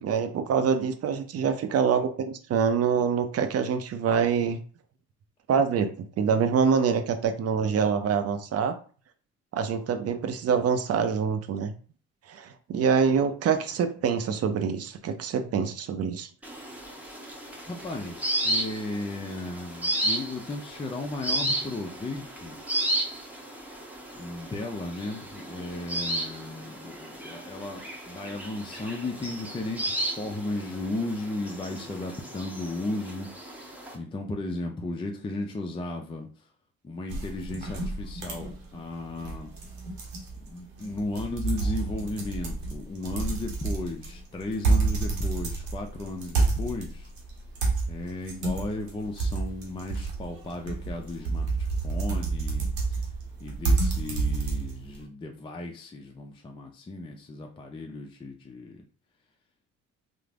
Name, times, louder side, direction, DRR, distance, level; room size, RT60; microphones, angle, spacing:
voice 1, 0.0-4.6 5.5-8.8 9.5-11.7 12.3-16.3, right 6 dB, 40° right, 8 dB, 0.5 m, -25 dB
sound 1, 16.4-34.0, right 1 dB, 5° right, 0.9 m, -34 dB
voice 2, 17.7-22.6 24.1-36.5 36.8-39.5 40.4-47.1 47.9-53.0 53.4-58.9, left 2 dB, 15° left, 2 dB, 0.4 m, -35 dB
sound 2, 37.1-55.0, right 3 dB, 90° right, 0.7 m, -29 dB
3.1 x 2.0 x 2.4 m, 0.40 s
hypercardioid pair, 50°, 37 cm